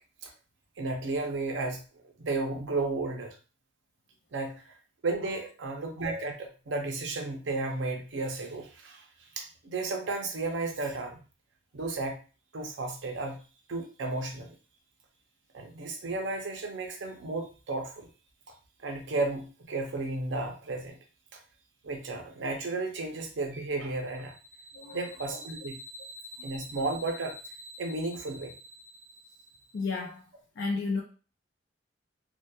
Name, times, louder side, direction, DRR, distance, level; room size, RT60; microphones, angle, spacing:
voice 1, 0.8-3.3 4.3-4.6 5.0-9.1 9.4-11.2 11.7-12.2 12.5-13.4 13.7-14.6 15.5-18.1 18.8-21.0 21.8-24.3 24.9-25.8 26.4-27.3 27.8-28.5, right 3 dB, 85° right, 0.6 m, -33 dB
sound 1, 24.0-29.9, equal, 40° right, 0.5 m, -47 dB
voice 2, 24.7-25.1 26.4-26.7 29.7-30.3 30.6-31.0, left 4 dB, 70° left, 0.4 m, -33 dB
2.7 x 2.2 x 2.2 m
head